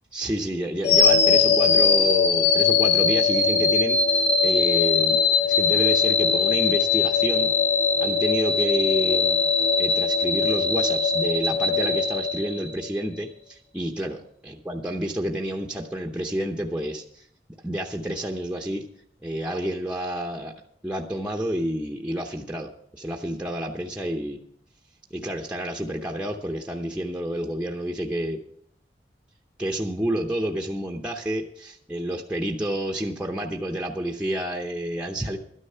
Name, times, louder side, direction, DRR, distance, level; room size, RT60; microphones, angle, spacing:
voice 1, 0.1-7.5 8.0-9.4 9.8-17.2 17.6-18.8 19.2-20.5 20.8-24.4 25.1-28.4 29.6-35.4, equal, 5° right, 1 dB, 0.8 m, -29 dB
sound 1, 0.8-13.0, left 5 dB, 80° left, 1.6 m, -21 dB
12.5 x 10.0 x 5.6 m, 0.68 s
head